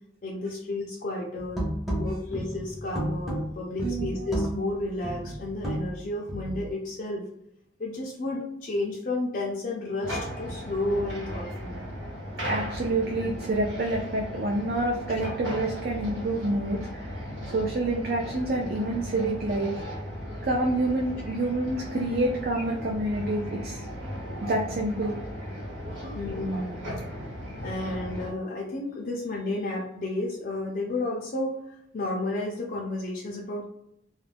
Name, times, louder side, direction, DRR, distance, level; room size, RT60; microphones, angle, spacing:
voice 1, 0.2-1.6 1.9-7.2 7.8-11.8 21.3-21.4 22.5-22.6 26.1-26.8 27.6-33.6, left 2 dB, 45° left, -2 dB, 0.4 m, -32 dB
sound 1, 1.4-6.7, right 1 dB, ahead, 0.6 m, -32 dB
sound 2, 10.0-28.3, equal, 85° right, 1.2 m, -37 dB
voice 2, 12.4-19.7 20.4-23.9 24.4-25.2 25.9-26.2, right 2 dB, 50° right, -1 dB, 0.4 m, -28 dB
2.4 x 2.1 x 3.3 m, 0.80 s
head